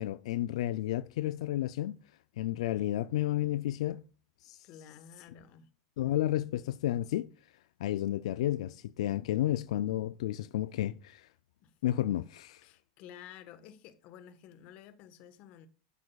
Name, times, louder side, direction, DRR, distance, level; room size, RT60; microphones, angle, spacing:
voice 1, 0.0-2.0 2.4-4.0 4.4-4.7 6.0-7.3 7.8-11.3 11.8-12.6, left 13 dB, 80° left, 0.4 m, -31 dB
voice 2, 4.6-5.7 11.6-11.7 12.6-15.7, left 9 dB, 45° left, 1.3 m, -52 dB
10.5 x 8.4 x 2.4 m
supercardioid pair, 155°, 3 cm